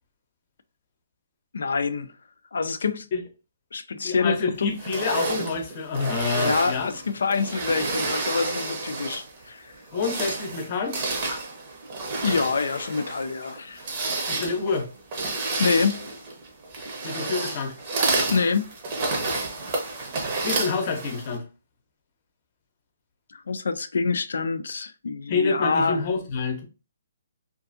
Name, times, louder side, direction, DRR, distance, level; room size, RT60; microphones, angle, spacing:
voice 1, 1.5-2.1 2.5-3.1 3.7-4.8 6.3-9.7 12.2-13.9 15.6-16.1 18.3-18.7 23.3-26.0, left 5 dB, 75° left, 0.3 m, -26 dB
voice 2, 4.0-6.9 9.9-11.0 14.3-14.9 16.8-17.8 20.4-21.4 25.3-26.6, left 4 dB, 40° left, 0.7 m, -27 dB
sound 1, 4.8-9.4 9.8-21.4, right 3 dB, 40° right, 0.7 m, -30 dB
2.5 x 2.4 x 2.5 m
hypercardioid pair, 155°, 0 cm